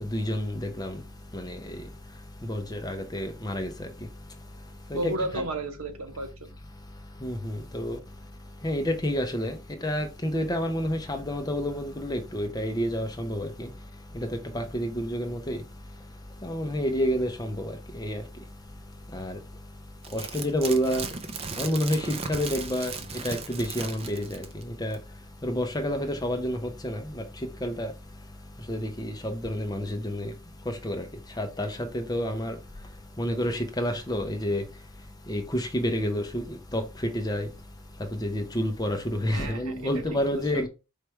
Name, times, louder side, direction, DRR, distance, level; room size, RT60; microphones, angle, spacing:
voice 1, 0.0-1.0 1.3-1.8 2.4-3.9 4.9-5.4 7.2-8.0 8.6-13.7 14.1-15.6 16.4-18.2 19.1-19.4 20.1-21.1 21.6-22.9 23.2-25.0 25.4-27.2 27.6-27.9 28.7-30.3 30.7-31.1 31.4-32.6 33.2-34.6 35.3-37.5 38.1-40.7, equal, 20° left, 0.7 m, -29 dB
voice 2, 4.9-6.5 39.3-39.9 40.3-40.6, right 2 dB, 85° right, 1.0 m, -33 dB
sound 1, 20.0-24.6 24.9-25.0, right 5 dB, 30° right, 0.5 m, -36 dB
4.5 x 3.3 x 3.2 m
head